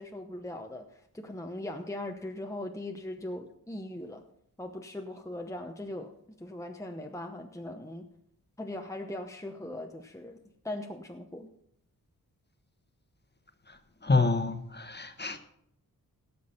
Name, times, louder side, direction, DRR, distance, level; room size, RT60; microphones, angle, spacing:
voice 1, 0.0-4.2 4.6-6.1 6.4-8.1 8.6-10.4 10.6-11.5, left 1 dB, 10° left, 4 dB, 0.9 m, -39 dB
voice 2, 13.7-15.4, left 3 dB, 30° left, 8 dB, 1.3 m, -28 dB
17.0 x 6.1 x 5.7 m, 0.73 s
wide cardioid pair, 75°, 36 cm